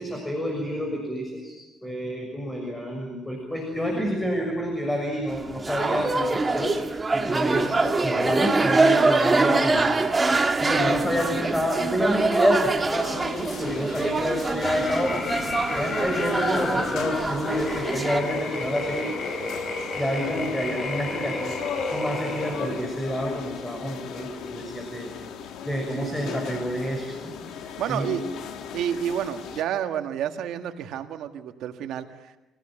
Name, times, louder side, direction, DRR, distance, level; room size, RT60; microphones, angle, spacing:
voice 1, 0.0-6.8 7.1-9.9 10.6-15.2 15.7-19.1 19.9-21.5 21.9-25.1 25.6-27.3 27.9-28.1, equal, 10° left, 1 dB, 6.6 m, -28 dB
sound 1, 5.3-18.2, right 3 dB, 25° right, 2.2 m, -24 dB
sound 2, 13.0-29.6, left 7 dB, 85° left, 2.1 m, -39 dB
sound 3, 14.6-22.9, left 3 dB, 45° left, 4.1 m, -32 dB
voice 2, 26.0-26.4 27.6-28.2 28.7-32.3, right 10 dB, 85° right, 7 dB, 1.8 m, -30 dB
27.0 x 17.0 x 9.1 m, 1.0 s
cardioid pair, 90°, 0 cm